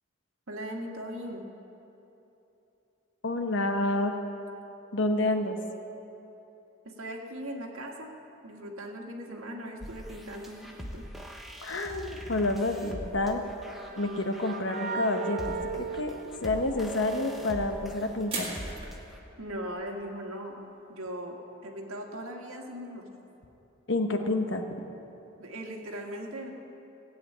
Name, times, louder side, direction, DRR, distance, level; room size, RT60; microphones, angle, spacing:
voice 1, 0.5-1.5 6.8-8.1 8.4-11.0 19.4-20.6 20.9-23.1 25.4-26.5, equal, 85° right, 1 dB, 1.8 m, -39 dB
voice 2, 3.2-4.1 4.9-5.6 11.6-13.4 14.0-16.1 16.4-18.5 23.9-24.6, left 2 dB, 60° left, 5 dB, 1.1 m, -29 dB
sound 1, 9.8-19.2, equal, ahead, 0.9 m, -43 dB
sound 2, 13.2-17.1, right 4 dB, 45° right, 0.5 m, -37 dB
sound 3, 18.3-19.0, right 3 dB, 25° right, 2.0 m, -35 dB
16.5 x 7.9 x 8.7 m, 3.0 s
head